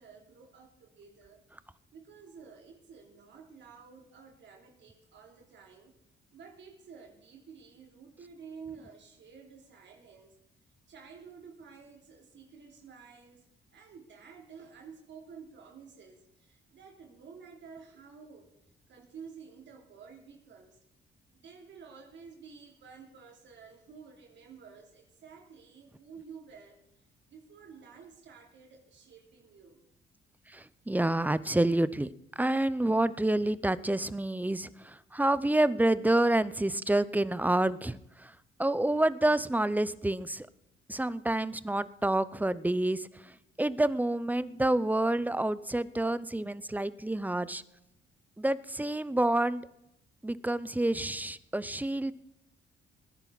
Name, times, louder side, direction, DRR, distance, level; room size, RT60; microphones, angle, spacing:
voice 1, 0.0-1.4 1.9-5.9 6.3-10.3 10.9-13.4 13.7-18.5 18.9-20.8 21.3-26.8 27.3-29.8, right 6 dB, 65° right, 1 dB, 3.1 m, -51 dB
voice 2, 30.5-32.1 32.4-38.3 38.6-40.5 40.9-43.3 43.6-47.6 48.4-49.7 50.2-52.1, right 1 dB, 10° right, 16 dB, 0.6 m, -28 dB
20.0 x 10.5 x 4.1 m, 0.83 s
cardioid pair, 90°, 20 cm